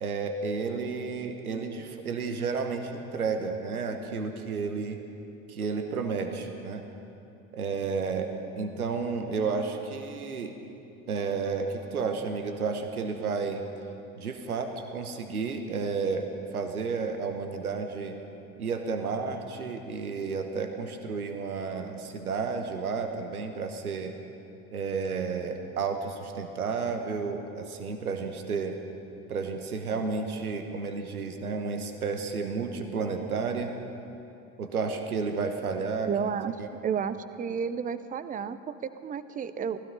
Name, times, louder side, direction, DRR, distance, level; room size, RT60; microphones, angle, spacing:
voice 1, 0.0-5.0 5.5-6.8 7.5-8.3 8.6-10.6 11.1-13.7 14.2-18.2 18.6-24.1 24.7-28.8 29.3-33.7 34.6-36.1 36.6-36.7, right 5 dB, 80° right, 6 dB, 1.1 m, -32 dB
voice 2, 36.1-36.5 36.8-39.8, right 7 dB, 20° right, 13 dB, 0.6 m, -32 dB
16.0 x 15.5 x 5.4 m, 2.8 s
figure-of-eight pair, 65°, 43 cm